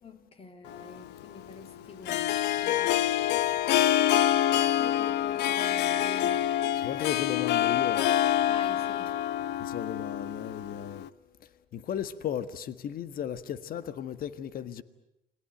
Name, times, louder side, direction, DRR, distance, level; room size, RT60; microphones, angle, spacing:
voice 1, 0.0-2.4 2.6-3.0 4.7-6.6 8.5-9.2, left 4 dB, 35° left, 3.5 m, -46 dB
Harp, 0.7-11.1, left 12 dB, 85° left, 1.0 m, -26 dB
voice 2, 6.7-8.1 9.6-11.1 11.4-14.8, left 9 dB, 60° left, 1.5 m, -35 dB
29.5 x 21.0 x 9.1 m
cardioid pair, 110°, 17 cm